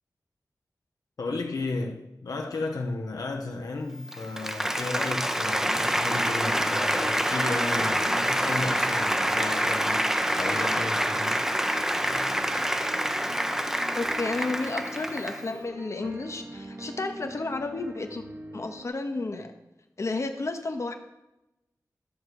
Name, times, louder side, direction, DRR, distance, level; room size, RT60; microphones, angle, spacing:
voice 1, 1.2-11.5, left 3 dB, 75° left, 0.9 m, -34 dB
Applause, 4.0-15.5, equal, 5° right, 0.6 m, -27 dB
sound 1, 5.6-18.9, right 1 dB, 35° right, 1.0 m, -43 dB
voice 2, 14.0-18.2 18.5-19.5 20.0-20.9, left 3 dB, 50° left, 1.0 m, -32 dB
12.0 x 6.5 x 4.8 m
wide cardioid pair, 70°, 6 cm